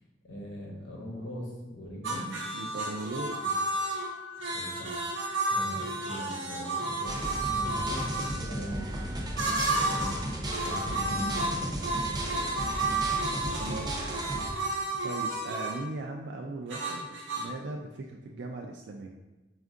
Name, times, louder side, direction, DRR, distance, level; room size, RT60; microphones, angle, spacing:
voice 1, 0.2-2.3 3.4-3.5 4.5-4.9 5.5-12.4 14.7-14.8, equal, 80° left, -2 dB, 0.9 m, -40 dB
sound 1, 2.0-8.3 9.4-10.2 10.5-15.8 16.7-17.5, right 2 dB, 90° right, 0.8 m, -32 dB
voice 2, 2.5-3.4 13.6-14.1 14.5-19.1, right 2 dB, 65° right, 1 dB, 0.3 m, -39 dB
Wind instrument woodwind instrument, 3.1-10.9, left 2 dB, 35° left, 0.6 m, -49 dB
sound 2, 7.1-14.5, right 1 dB, 20° right, 0.6 m, -35 dB
4.3 x 2.4 x 3.7 m, 1.1 s
head